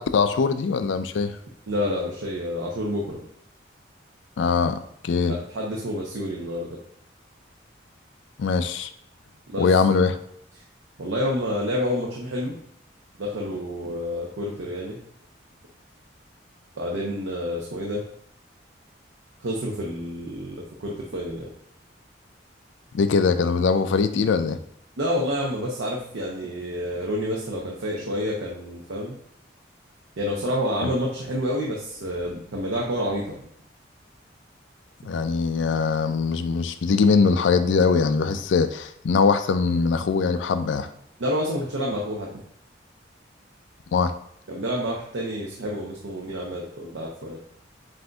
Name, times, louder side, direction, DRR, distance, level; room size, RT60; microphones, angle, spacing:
voice 1, 0.0-1.4 4.4-5.4 8.4-8.9 9.6-10.2 22.9-24.6 30.8-30.9 35.0-40.9 43.9-44.1, left 5 dB, 75° left, 10 dB, 0.4 m, -22 dB
voice 2, 1.7-3.2 5.5-6.8 9.5-9.8 11.0-12.5 13.2-15.0 16.8-18.0 19.4-21.5 25.0-29.2 30.2-33.3 41.2-42.4 44.5-47.4, equal, 85° right, -2 dB, 0.7 m, -28 dB
7.5 x 2.6 x 2.2 m, 0.71 s
head